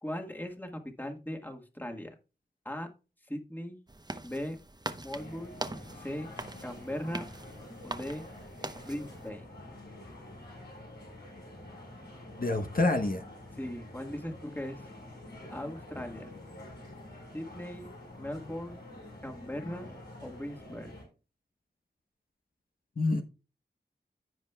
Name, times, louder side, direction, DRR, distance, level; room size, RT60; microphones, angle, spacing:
voice 1, 0.0-2.2 2.6-2.9 3.3-3.8 4.2-4.6 5.0-5.6 5.9-6.3 6.6-7.2 7.8-8.2 8.8-9.5 13.6-14.9 15.5-16.3 17.3-17.9 18.2-18.8 19.2-19.9 20.2-21.0, left 1 dB, 10° left, 4 dB, 1.6 m, -39 dB
sound 1, 3.9-9.3, right 2 dB, 25° right, 0.8 m, -42 dB
sound 2, 5.1-21.0, left 1 dB, 75° left, 4.9 m, -48 dB
voice 2, 12.4-13.2 23.0-23.2, left 2 dB, 50° left, 4 dB, 1.0 m, -27 dB
15.5 x 5.1 x 2.3 m, 0.31 s
wide cardioid pair, 70°, 18 cm